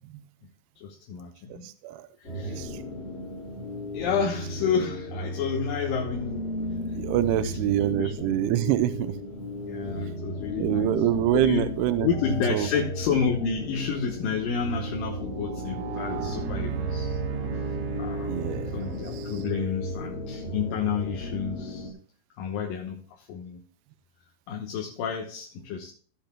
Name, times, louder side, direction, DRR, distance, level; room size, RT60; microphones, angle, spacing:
voice 1, 0.8-1.7 2.2-2.6 3.9-6.5 7.4-8.3 8.7-8.9 9.7-10.9 11.3-11.6 12.0-17.2 17.6-18.4 18.7-21.9 22.4-23.6 24.5-25.9, left 6 dB, 70° left, 1 dB, 2.6 m, -30 dB
voice 2, 1.5-2.8 6.9-9.1 10.6-12.1 12.5-12.7 18.3-19.3, right 13 dB, 80° right, 12 dB, 2.7 m, -26 dB
sound 1, 2.2-21.9, left 1 dB, 35° left, 3.1 m, -35 dB
sound 2, 13.0-19.7, right 8 dB, 65° right, 1.9 m, -36 dB
16.0 x 8.8 x 2.2 m, 0.43 s
omnidirectional pair, 4.7 m